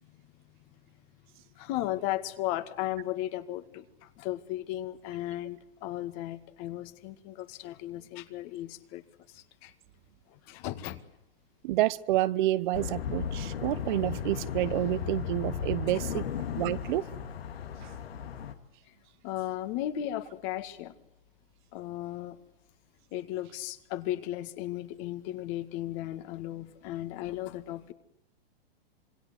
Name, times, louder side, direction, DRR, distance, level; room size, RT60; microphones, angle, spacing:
voice 1, 1.6-9.0 9.3-9.7 10.3-11.0 16.1-16.2 19.2-20.9 21.7-22.4 23.1-27.9, left 14 dB, 45° left, 2.0 m, -35 dB
voice 2, 11.6-16.2 16.6-17.1 17.8-17.9, right 15 dB, 55° right, 1.0 m, -29 dB
sound 1, 12.7-18.5, left 7 dB, 80° left, 2.2 m, -35 dB
27.0 x 22.5 x 8.3 m
hypercardioid pair, 125°, 30 cm